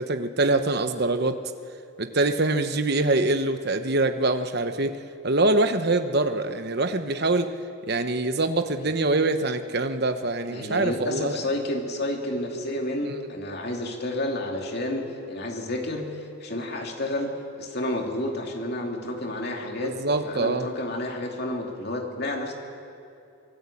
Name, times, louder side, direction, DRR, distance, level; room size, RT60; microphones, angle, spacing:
voice 1, 0.0-1.4 2.0-5.0 5.2-7.5 7.9-11.4 13.1-13.2 19.8-20.7, right 2 dB, 50° right, 8 dB, 1.0 m, -24 dB
voice 2, 10.5-16.1 16.4-19.9 20.2-22.5, left 1 dB, 50° left, 1 dB, 2.7 m, -30 dB
25.0 x 18.0 x 8.5 m, 2.6 s
head